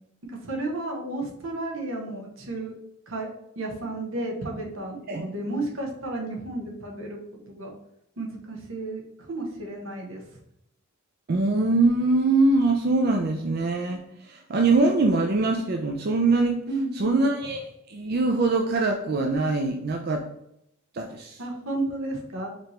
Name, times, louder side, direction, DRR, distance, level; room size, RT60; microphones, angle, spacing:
voice 1, 0.2-2.7 3.1-3.3 3.6-7.2 7.5-7.7 8.2-9.0 9.3-10.2 16.7-17.2 21.4-22.5, right 2 dB, 80° right, 0 dB, 1.1 m, -32 dB
voice 2, 11.3-16.6 16.9-17.6 17.9-20.3 20.9-21.4, right 3 dB, 50° right, 3 dB, 0.4 m, -23 dB
5.1 x 2.9 x 3.2 m, 0.77 s
head